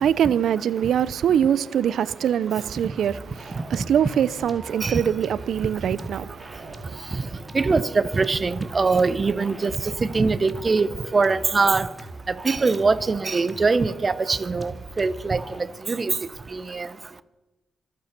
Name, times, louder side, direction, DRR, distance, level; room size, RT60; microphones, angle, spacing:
voice 1, 0.0-7.0, right 9 dB, 75° right, 0.5 m, -23 dB
sound 1, 3.0-15.7, right 1 dB, 20° right, 2.4 m, -42 dB
voice 2, 7.5-9.7 10.0-10.9 11.1-11.9 12.4-14.7 15.0-15.4 15.9-16.1 16.5-16.9, right 4 dB, 40° right, 0.9 m, -22 dB
25.5 x 8.8 x 5.9 m
supercardioid pair, 50°, 0 cm